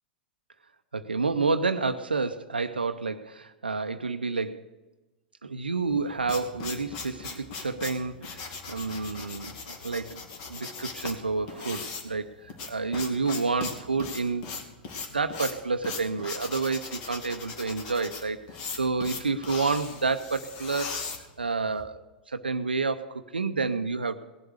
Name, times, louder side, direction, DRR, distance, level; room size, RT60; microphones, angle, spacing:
voice 1, 0.9-4.6 5.4-10.2 10.5-14.5 15.1-18.4 18.8-21.0 21.4-24.2, right 4 dB, 85° right, 8 dB, 0.6 m, -29 dB
sound 1, 5.9-21.8, left 5 dB, 50° left, 2.4 m, -39 dB
18.0 x 8.0 x 6.5 m, 1.1 s
figure-of-eight pair, 100°, 5 cm